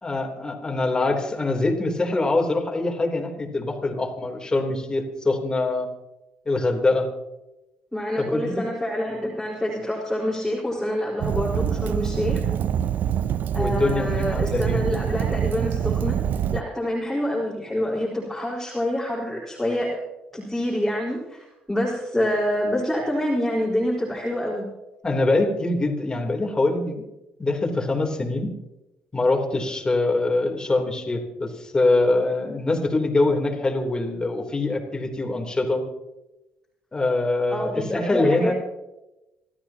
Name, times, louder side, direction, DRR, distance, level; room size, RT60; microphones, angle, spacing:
voice 1, 0.0-5.9 6.5-7.1 8.2-8.7 13.6-14.8 25.0-27.0 27.4-28.5 29.1-35.8 36.9-38.5, left 2 dB, 20° left, 1 dB, 3.5 m, -24 dB
voice 2, 7.9-12.4 13.5-16.2 16.5-20.0 20.3-24.7 37.5-38.5, left 1 dB, 5° left, -6 dB, 4.7 m, -26 dB
Fire, 11.2-16.6, right 9 dB, 60° right, 0.7 m, -25 dB
27.0 x 13.5 x 3.0 m, 0.97 s
cardioid pair, 90°, 4 cm